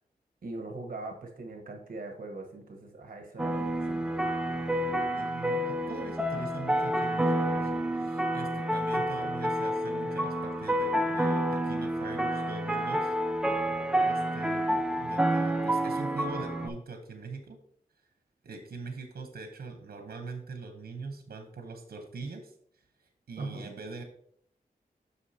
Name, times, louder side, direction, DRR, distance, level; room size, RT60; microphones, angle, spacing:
voice 1, 0.4-4.1 23.4-23.7, right 2 dB, 65° right, 3 dB, 1.1 m, -41 dB
sound 1, 3.4-16.7, right 1 dB, 5° right, 0.4 m, -29 dB
voice 2, 5.1-13.1 14.0-17.6 18.4-22.5 23.0-24.0, right 3 dB, 80° right, 5 dB, 0.9 m, -42 dB
8.1 x 5.9 x 2.8 m, 0.65 s
wide cardioid pair, 145°, 16 cm